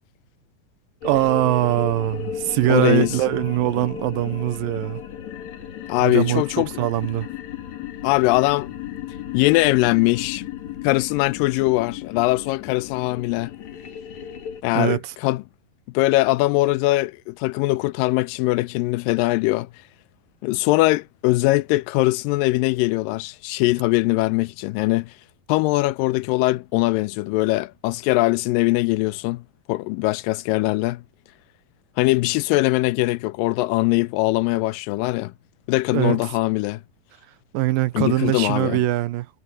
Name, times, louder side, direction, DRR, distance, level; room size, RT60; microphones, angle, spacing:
sound 1, 1.0-14.6, left 10 dB, 55° left, 3.1 m, -35 dB
voice 1, 1.0-5.0 6.0-7.3 14.7-15.1 35.9-36.2 37.5-39.4, right 15 dB, 80° right, 2.5 m, -22 dB
voice 2, 2.7-3.1 5.9-6.7 8.0-8.7 9.3-10.4 10.8-13.5 14.6-15.4 15.9-19.7 20.4-25.1 25.5-29.4 29.7-31.0 32.0-35.3 35.7-36.8 38.0-38.8, left 20 dB, 80° left, 2.2 m, -21 dB
omnidirectional pair, 4.1 m